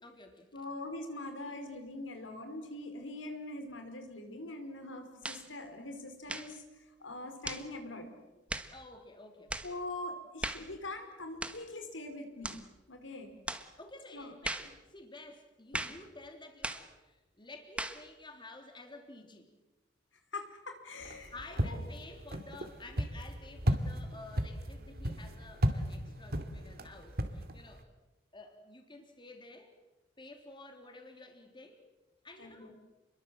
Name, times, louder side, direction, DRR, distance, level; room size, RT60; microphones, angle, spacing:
voice 1, 0.0-0.5 8.7-9.6 13.8-19.5 21.3-27.9 28.3-29.7 30.2-31.9 32.2-32.7, left 2 dB, 25° left, 4 dB, 3.6 m, -51 dB
voice 2, 0.5-6.6 7.0-8.1 9.6-12.6 12.9-13.4 14.1-14.3 15.7-15.8 20.3-21.3 21.6-21.8 32.4-32.7, left 2 dB, 90° left, 5 dB, 5.2 m, -43 dB
sound 1, 5.2-5.5 6.3-6.6 7.4-7.7 8.5-8.7 9.5-9.7 10.4-10.7 11.4-11.7 12.4-12.7 13.5-13.7 14.4-14.7 15.7-16.0 16.6-16.9 17.8-18.0, right 1 dB, 5° right, 1.4 m, -38 dB
sound 2, 21.0-27.8, equal, 55° right, 2.6 m, -35 dB
30.0 x 22.5 x 7.8 m, 1.1 s
head